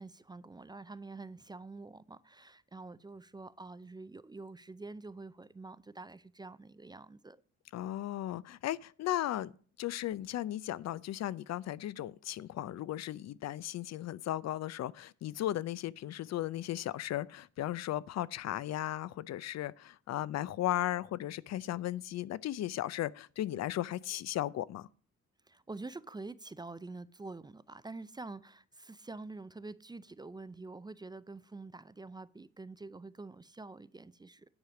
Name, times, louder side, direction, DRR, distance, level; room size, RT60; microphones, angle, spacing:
voice 1, 0.0-7.4 25.5-34.5, right 3 dB, 15° right, 0.4 m, -47 dB
voice 2, 7.7-9.5 9.8-24.9, left 13 dB, 60° left, 0.5 m, -36 dB
9.8 x 4.9 x 6.9 m
cardioid pair, 90°, 30 cm